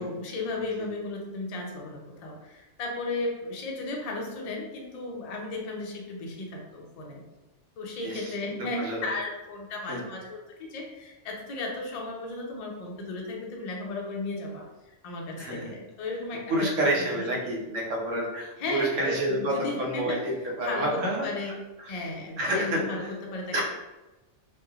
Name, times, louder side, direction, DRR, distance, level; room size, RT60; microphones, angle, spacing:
voice 1, 0.0-7.2 7.8-14.7 15.0-17.2 18.6-20.3 20.6-21.5 21.9-23.6, left 2 dB, 55° left, 0 dB, 0.4 m, -35 dB
voice 2, 8.0-8.4 8.8-9.1 9.9-10.0 15.4-15.7 16.5-21.3 21.8-22.0 22.4-22.8 23.5-23.6, right 1 dB, 90° right, -2 dB, 1.1 m, -29 dB
3.1 x 2.6 x 2.3 m, 1.1 s
omnidirectional pair, 1.3 m